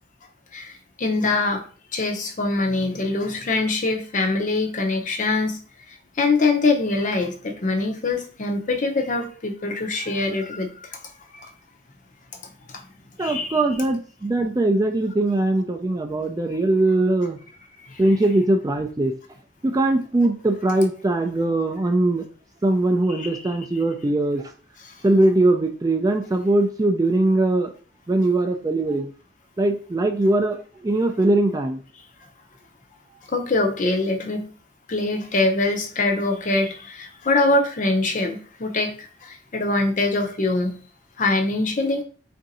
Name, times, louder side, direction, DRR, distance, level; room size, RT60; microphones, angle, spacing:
voice 1, 0.5-1.6 1.9-5.6 5.9-11.0 11.3-11.5 13.2-13.6 17.9-18.0 23.1-23.4 24.9-25.0 33.3-34.5 34.9-40.8 41.2-42.0, left 2 dB, 45° left, 4 dB, 0.6 m, -23 dB
voice 2, 13.2-17.4 18.0-19.1 19.6-22.3 22.6-24.5 25.0-27.7 28.1-29.1 29.6-31.8, right 2 dB, 20° right, 5 dB, 0.4 m, -21 dB
3.6 x 2.6 x 4.1 m, 0.40 s
head